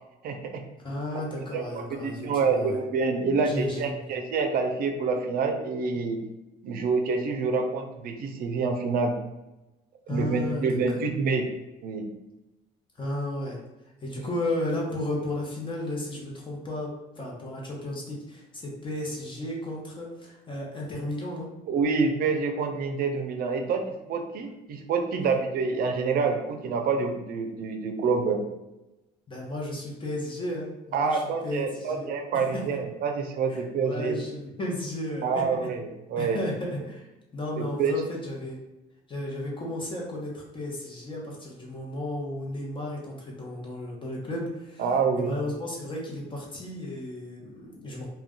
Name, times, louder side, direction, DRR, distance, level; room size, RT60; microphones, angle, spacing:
voice 1, 0.2-0.6 1.1-1.2 1.5-6.2 6.6-9.1 10.1-11.5 11.8-12.1 21.7-28.4 30.9-34.2 35.2-36.4 37.6-37.9 44.8-45.4, right 4 dB, 60° right, 5 dB, 0.5 m, -27 dB
voice 2, 0.8-2.8 3.4-4.2 10.1-10.7 13.0-13.6 14.0-16.9 17.2-21.5 29.3-32.6 33.5-35.4 36.2-38.6 39.1-44.8 45.2-48.0, left 1 dB, 30° left, -2 dB, 0.8 m, -34 dB
2.3 x 2.2 x 3.6 m, 0.98 s
cardioid pair, 110°, 17 cm